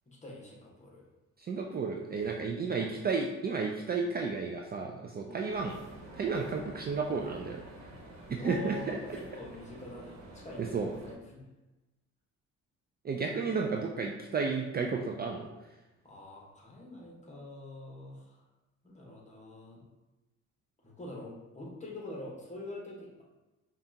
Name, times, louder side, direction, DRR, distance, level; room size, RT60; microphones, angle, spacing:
voice 1, 0.1-1.0 5.2-5.5 8.3-11.4 16.0-18.4 18.8-19.8 20.8-23.2, left 2 dB, 25° left, -3 dB, 1.2 m, -45 dB
voice 2, 1.5-5.8 6.1-7.6 8.3-9.0 10.7-10.9 13.0-15.5, right 4 dB, 30° right, 1 dB, 0.4 m, -32 dB
sound 1, 5.5-11.1, right 1 dB, 60° right, 1.2 m, -50 dB
5.5 x 2.4 x 2.7 m, 1.1 s
cardioid pair, 90°, 30 cm